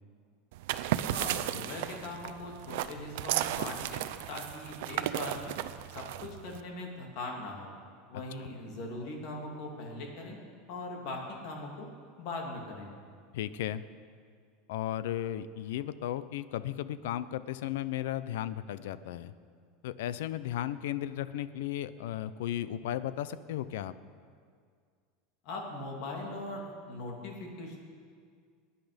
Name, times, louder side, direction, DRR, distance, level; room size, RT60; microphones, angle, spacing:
sound 1, 0.5-6.6, right 13 dB, 65° right, 0.6 m, -34 dB
voice 1, 1.1-5.5 5.9-7.7 8.1-10.4 10.7-11.9 12.2-12.9 25.4-27.8, left 2 dB, 45° left, 0 dB, 2.8 m, -40 dB
voice 2, 8.1-8.5 13.3-13.8 14.7-19.3 19.8-23.9, left 12 dB, 75° left, 15 dB, 0.6 m, -35 dB
21.0 x 10.0 x 5.2 m, 2.1 s
supercardioid pair, 170°, 0 cm